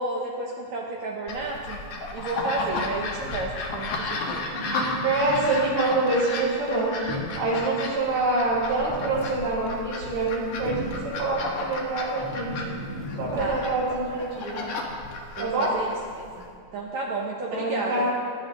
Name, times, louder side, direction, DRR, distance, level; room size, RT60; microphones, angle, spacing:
voice 1, 0.0-1.8 2.1-4.4 13.3-13.6 15.4-18.1, right 3 dB, 65° right, -2 dB, 1.8 m, -32 dB
sound 1, 1.3-16.5, left 3 dB, 60° left, 2.7 m, -33 dB
sound 2, 4.5-6.3 7.0-7.6 8.5-9.6 10.2-11.2 12.1-13.3, equal, 10° right, 1.5 m, -36 dB
voice 2, 5.0-6.9 7.4-12.6 13.2-14.6 15.4-15.7 17.5-18.1, right 2 dB, 85° right, -11 dB, 5.0 m, -26 dB
18.0 x 11.5 x 3.8 m, 2.2 s
omnidirectional pair, 4.4 m